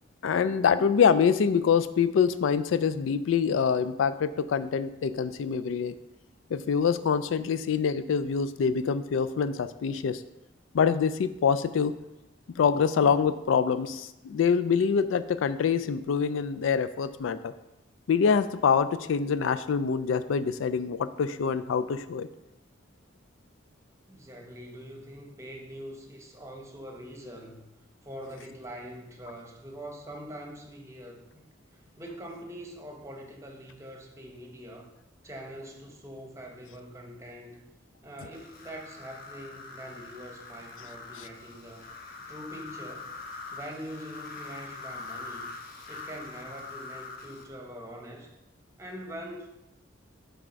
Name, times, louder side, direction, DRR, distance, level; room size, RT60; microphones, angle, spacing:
voice 1, 0.2-5.9 6.5-10.2 10.7-11.9 12.6-17.5 18.1-22.3, left 6 dB, 90° left, 12 dB, 0.4 m, -25 dB
voice 2, 24.1-27.7 28.0-31.4 32.0-34.9 35.2-37.6 38.0-41.9 42.3-43.1 43.5-45.5 45.9-48.3 48.8-49.5, equal, 15° right, 2 dB, 1.0 m, -43 dB
sound 1, 38.3-47.5, left 4 dB, 50° left, 1.0 m, -43 dB
7.5 x 3.5 x 5.1 m, 0.90 s
head